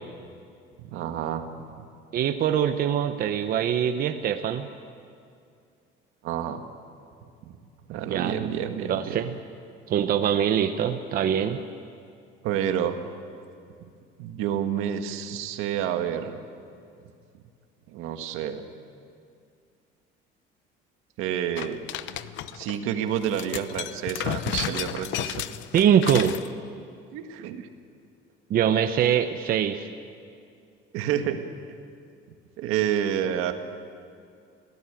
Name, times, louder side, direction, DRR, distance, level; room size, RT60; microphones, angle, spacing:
voice 1, 0.8-1.5 1.8-1.9 6.2-6.6 7.4-7.6 7.9-9.3 12.4-13.0 14.2-16.4 17.9-18.6 21.2-21.8 22.5-25.5 27.1-27.7 30.9-31.4 32.6-33.5, right 9 dB, 80° right, 6 dB, 1.8 m, -29 dB
voice 2, 2.1-4.7 8.1-8.5 8.8-9.4 9.9-11.6 25.7-26.4 28.5-29.9, right 9 dB, 45° right, 7 dB, 0.9 m, -23 dB
sound 1, 21.6-22.8 23.2-26.5, left 12 dB, 65° left, 0.9 m, -33 dB
25.0 x 17.0 x 9.2 m, 2.4 s
cardioid pair, 160°, 21 cm